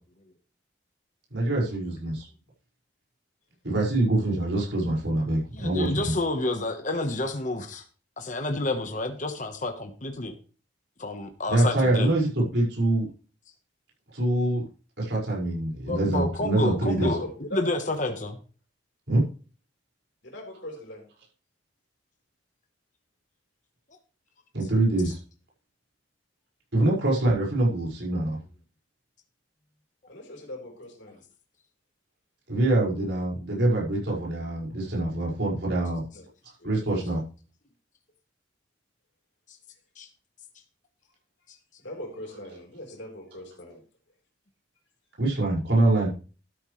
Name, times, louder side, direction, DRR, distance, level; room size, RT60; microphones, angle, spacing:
voice 1, 1.3-2.3 3.6-6.1 11.5-13.1 14.1-14.6 15.0-17.1 19.1-19.2 24.5-25.2 26.7-28.4 32.5-36.0 36.6-37.2 45.2-46.1, right 2 dB, 65° right, -3 dB, 5.7 m, -24 dB
voice 2, 5.5-7.8 8.2-10.3 11.0-12.1 15.9-17.2 17.5-18.4 40.0-40.1, left 2 dB, 40° left, 5 dB, 1.3 m, -29 dB
voice 3, 16.9-18.3 20.2-21.0 30.1-31.2 36.1-36.2 36.6-36.9 41.8-43.8, left 1 dB, 70° left, 1 dB, 4.3 m, -40 dB
12.5 x 9.6 x 3.3 m, 0.37 s
head